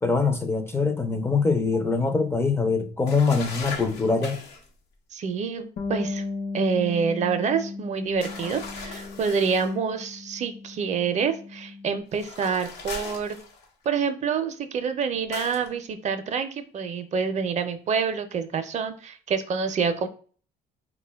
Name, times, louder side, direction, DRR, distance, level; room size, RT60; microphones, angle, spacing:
voice 1, 0.0-4.4, left 4 dB, 15° left, 0.4 m, -23 dB
sound 1, 3.1-4.7 8.2-9.8 12.1-13.9 15.3-15.7, left 4 dB, 90° left, 0.8 m, -38 dB
voice 2, 5.1-6.2 6.5-13.4 13.9-20.1, right 6 dB, 45° right, 0.5 m, -27 dB
Bass guitar, 5.8-12.0, left 3 dB, 55° left, 0.7 m, -36 dB
3.8 x 2.2 x 3.3 m
cardioid pair, 110°, 17 cm